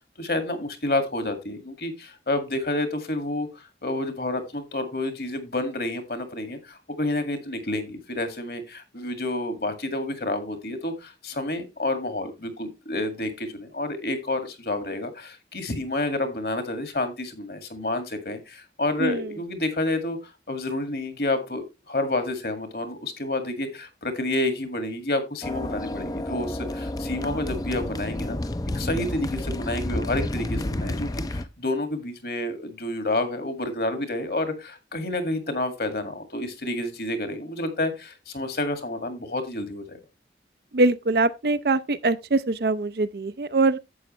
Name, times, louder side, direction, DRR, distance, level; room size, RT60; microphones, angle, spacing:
voice 1, 0.2-20.2 20.5-28.4 28.7-40.0, left 2 dB, 60° left, 2.0 m, -29 dB
sound 1, 25.4-31.5, left 1 dB, 20° left, 0.5 m, -30 dB
voice 2, 40.7-43.8, right 2 dB, 60° right, 0.5 m, -23 dB
11.0 x 8.2 x 3.1 m
head